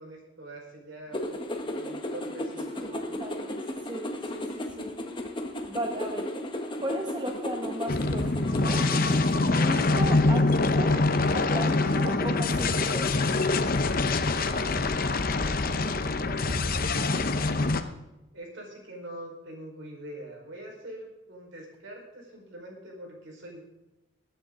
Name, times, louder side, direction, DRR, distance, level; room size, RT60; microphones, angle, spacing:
voice 1, 0.0-1.4 1.6-3.1 14.2-15.0 15.4-16.9 18.3-23.6, right 1 dB, 65° right, 0 dB, 4.6 m, -44 dB
sound 1, 1.1-9.4, left 1 dB, 25° left, 1.3 m, -35 dB
voice 2, 2.9-3.5 3.9-5.0 5.7-6.3 6.8-8.9 9.5-11.0 11.3-13.1, right 1 dB, 20° right, 2 dB, 1.0 m, -36 dB
sound 2, 7.9-17.8, left 3 dB, 45° left, 0.8 m, -25 dB
21.5 x 9.2 x 3.8 m, 1.0 s
head